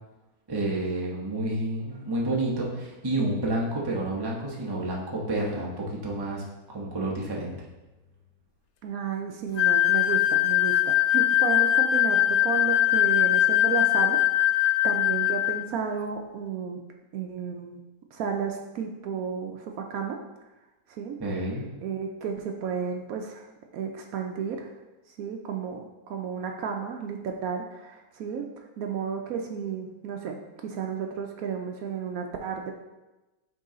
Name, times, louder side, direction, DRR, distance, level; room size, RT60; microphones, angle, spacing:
voice 1, 0.5-7.5 21.2-21.6, right 1 dB, 20° right, -3 dB, 0.8 m, -29 dB
voice 2, 8.8-14.2 14.5-16.8 17.1-17.8 18.1-20.2 20.9-21.2 21.8-23.5 23.7-24.7 25.2-28.4 28.8-32.7, right 6 dB, 70° right, 2 dB, 1.0 m, -33 dB
sound 1, 9.6-15.6, left 14 dB, 80° left, 1.1 m, -22 dB
8.2 x 3.1 x 3.8 m, 1.1 s
omnidirectional pair, 1.6 m